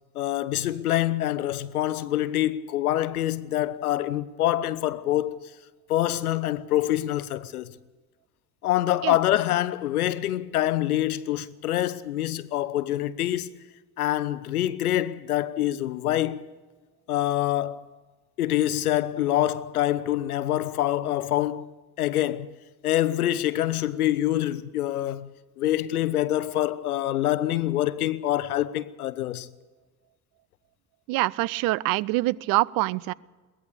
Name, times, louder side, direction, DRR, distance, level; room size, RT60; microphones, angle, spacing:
voice 1, 0.1-5.4 5.9-7.7 8.6-13.5 14.0-16.5 17.1-17.9 18.4-21.7 22.0-22.5 22.8-25.3 25.6-29.5, left 13 dB, 75° left, 0.8 m, -25 dB
voice 2, 31.1-33.1, right 19 dB, 50° right, 0.6 m, -25 dB
22.0 x 18.0 x 6.8 m
figure-of-eight pair, 55°, 44 cm